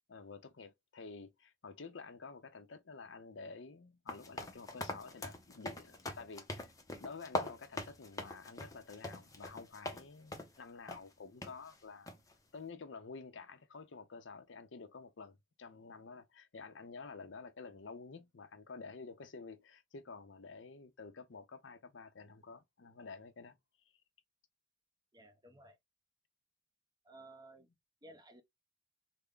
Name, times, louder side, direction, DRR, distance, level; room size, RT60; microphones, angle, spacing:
voice 1, 0.1-12.1 12.5-23.6, left 4 dB, 75° left, 0.6 m, -50 dB
sound 1, 4.1-10.0 10.3-10.6 10.9-11.0 11.4-11.5 12.1-12.3, left 2 dB, 20° left, 0.7 m, -42 dB
voice 2, 25.1-25.8 27.1-27.7 28.0-28.4, right 1 dB, 20° right, 0.8 m, -56 dB
3.4 x 2.1 x 3.6 m
head